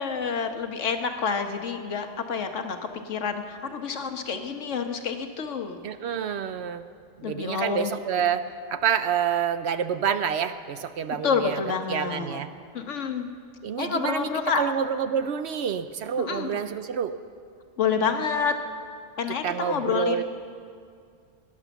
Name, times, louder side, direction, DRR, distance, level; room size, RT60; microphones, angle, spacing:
voice 1, 0.0-2.8 3.0-5.8 7.2-7.9 11.2-12.4 12.7-13.3 13.8-14.6 16.2-16.5 17.8-18.5 19.2-20.2, left 6 dB, 70° left, 6 dB, 1.4 m, -28 dB
voice 2, 5.8-6.9 7.2-11.6 11.9-12.5 13.6-14.3 14.6-17.1 19.4-20.2, right 8 dB, 65° right, 11 dB, 0.8 m, -28 dB
18.0 x 11.0 x 7.0 m, 2.3 s
omnidirectional pair, 1.3 m